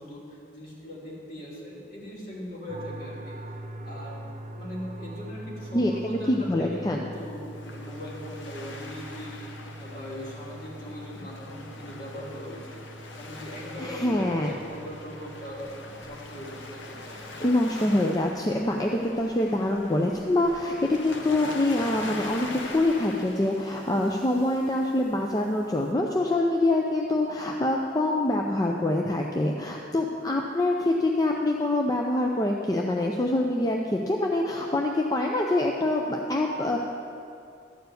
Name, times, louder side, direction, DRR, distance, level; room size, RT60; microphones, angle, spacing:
voice 1, 0.0-3.3 3.8-4.2 4.5-12.8 13.1-15.7 16.0-17.2, equal, 50° left, -6 dB, 3.0 m, -40 dB
sound 1, 2.7-17.5, right 1 dB, 40° right, 0.6 m, -43 dB
voice 2, 5.7-7.1 13.8-14.5 17.4-36.8, left 1 dB, 20° left, 0 dB, 0.5 m, -25 dB
Waves surf, 7.1-25.9, left 2 dB, 85° left, 1.0 m, -43 dB
12.5 x 4.6 x 8.0 m, 2.5 s
head